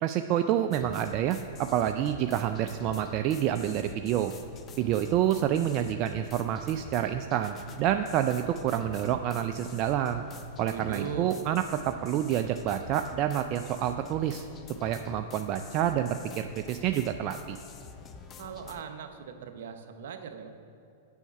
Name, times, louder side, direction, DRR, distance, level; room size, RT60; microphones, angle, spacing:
voice 1, 0.0-4.3 4.8-10.2 10.6-14.5 14.8-17.6, right 11 dB, 40° right, 7 dB, 0.3 m, -28 dB
sound 1, 0.7-18.8, left 5 dB, 30° left, 0.6 m, -47 dB
voice 2, 10.7-11.3 18.4-20.5, right 7 dB, 65° right, 7 dB, 0.8 m, -39 dB
7.0 x 5.7 x 6.9 m, 2.6 s
hypercardioid pair, 110°, 0 cm